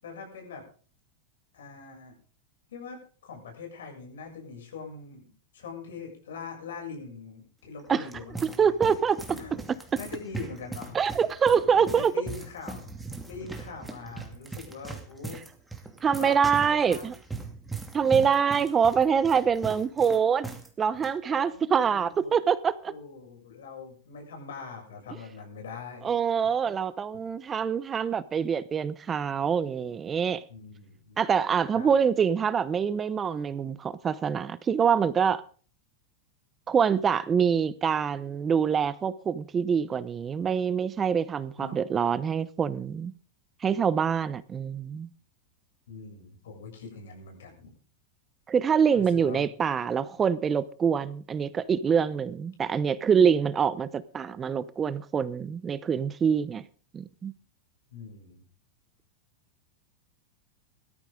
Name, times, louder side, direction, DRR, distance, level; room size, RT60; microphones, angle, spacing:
voice 1, 0.0-0.7 1.5-2.1 2.7-8.7 9.3-9.5 10.0-11.0 11.5-12.8 13.2-15.4 16.2-16.4 16.7-17.2 21.3-22.3 22.9-26.1 26.6-26.7 30.5-31.2 31.7-32.0 41.6-41.8 45.9-47.7 48.9-49.5 57.9-58.4, left 5 dB, 80° left, 7.2 m, -42 dB
sound 1, 7.8-20.7 20.9-21.1 21.8-22.1, right 3 dB, 10° right, 2.6 m, -40 dB
voice 2, 8.4-9.4 10.9-12.1 16.0-17.1 17.9-20.5 20.8-22.9 26.0-30.4 31.2-35.4 36.7-43.1 43.6-45.1 48.5-56.6 56.9-57.3, right 7 dB, 25° right, 0.8 m, -25 dB
17.5 x 13.5 x 3.8 m
hypercardioid pair, 105°, 0 cm